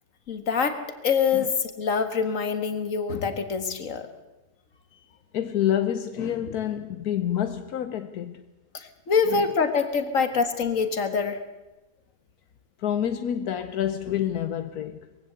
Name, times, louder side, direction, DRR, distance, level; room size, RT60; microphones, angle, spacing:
voice 1, 0.3-0.8 1.0-4.0 8.7-11.4, left 5 dB, 60° left, 2.0 m, -25 dB
voice 2, 5.3-8.4 9.3-9.4 12.8-15.1, left 10 dB, 80° left, 1.4 m, -28 dB
21.5 x 16.0 x 8.0 m
omnidirectional pair, 1.6 m